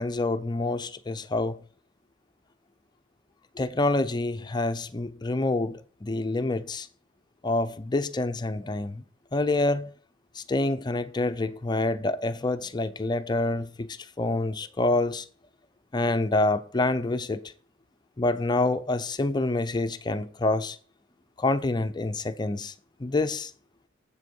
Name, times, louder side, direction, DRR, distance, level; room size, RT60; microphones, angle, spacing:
voice 1, 0.0-1.6 3.6-6.9 7.4-9.0 9.3-9.9 10.4-15.2 15.9-17.4 18.2-20.8 21.4-22.7 23.0-23.5, left 2 dB, 20° left, 0.5 m, -27 dB
7.6 x 6.5 x 5.3 m
head